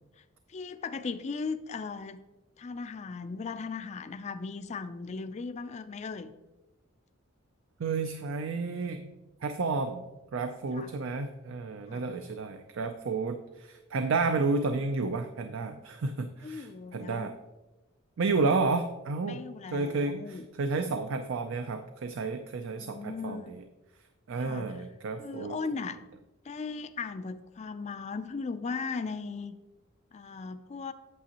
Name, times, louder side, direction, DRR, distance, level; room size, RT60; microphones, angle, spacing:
voice 1, 0.5-2.2 2.6-6.3 10.7-10.9 11.9-12.0 16.4-17.3 19.2-20.5 22.8-23.6 24.4-24.7 25.2-26.0 26.4-29.6 30.1-30.9, left 4 dB, 35° left, 11 dB, 0.4 m, -37 dB
voice 2, 7.8-9.1 9.4-10.1 10.3-17.3 18.2-19.4 19.7-23.6 24.3-25.6, right 3 dB, 65° right, 7 dB, 0.4 m, -31 dB
8.5 x 7.5 x 2.9 m, 1.1 s
head